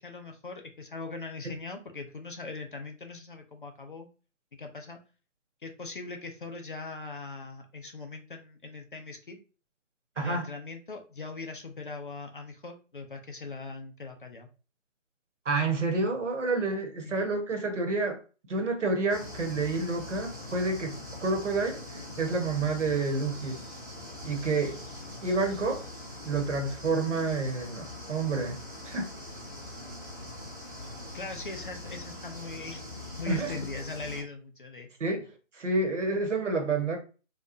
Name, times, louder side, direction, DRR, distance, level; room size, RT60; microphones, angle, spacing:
voice 1, 0.0-4.1 4.5-5.0 5.6-9.4 10.2-14.5 17.0-17.1 31.1-32.9 33.2-34.9, left 3 dB, 40° left, 0.5 m, -40 dB
voice 2, 10.2-10.5 15.4-18.2 18.5-23.6 24.2-24.8 25.2-25.9 26.2-28.6 28.8-29.1 33.3-33.6 35.0-37.0, right 3 dB, 65° right, 1.2 m, -29 dB
sound 1, 19.1-34.2, left 1 dB, 15° right, 0.7 m, -42 dB
3.7 x 2.9 x 2.6 m
figure-of-eight pair, 155°, 39 cm